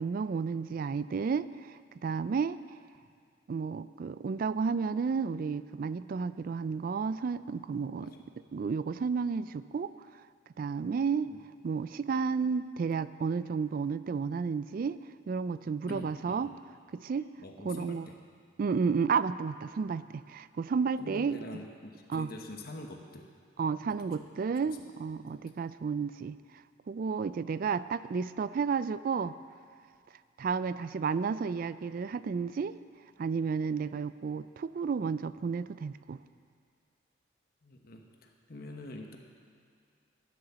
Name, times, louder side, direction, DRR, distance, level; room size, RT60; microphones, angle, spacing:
voice 1, 0.0-2.6 3.5-8.1 8.5-9.9 10.6-11.3 11.6-15.0 15.3-16.5 16.9-17.3 17.6-18.0 18.6-21.4 22.1-22.3 23.6-26.4 26.9-29.3 30.4-32.8 33.2-36.2, right 5 dB, 45° right, 15 dB, 0.3 m, -32 dB
voice 2, 15.6-16.5 17.4-18.2 21.0-23.3 23.8-24.3 25.2-25.4 37.6-39.2, left 1 dB, 50° left, 2 dB, 1.1 m, -46 dB
11.0 x 10.5 x 6.9 m, 2.3 s
head